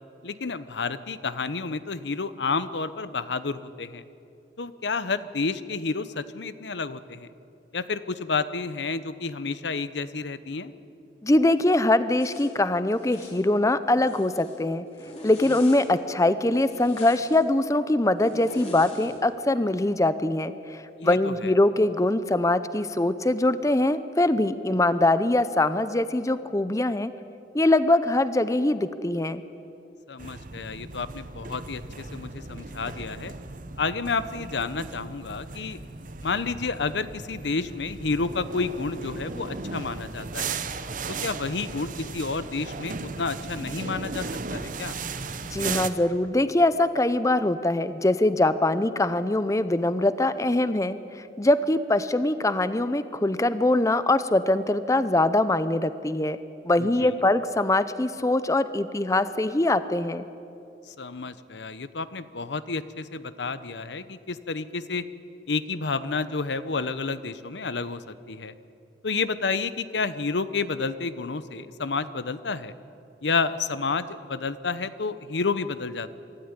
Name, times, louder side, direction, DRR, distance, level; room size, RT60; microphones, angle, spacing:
voice 1, 0.2-4.0 4.6-7.3 7.7-10.7 21.0-21.5 30.1-33.3 33.8-35.8 36.2-40.6 41.1-44.3 44.5-45.0 56.8-57.1 60.9-65.1 65.5-68.5 69.0-72.7 73.2-76.1, left 4 dB, 85° left, 14 dB, 0.8 m, -30 dB
voice 2, 11.2-14.8 15.2-27.1 27.5-29.4 45.5-56.4 56.6-60.3, left 2 dB, 20° left, 13 dB, 0.6 m, -23 dB
Zipper (clothing), 12.2-12.5 13.0-13.4 13.9-14.6 14.9-15.9 16.5-17.4 18.2-19.2, left 1 dB, 40° left, 3.9 m, -43 dB
sound 1, 30.2-45.9, right 4 dB, 50° right, 0.9 m, -36 dB
24.5 x 13.0 x 9.8 m, 2.7 s
head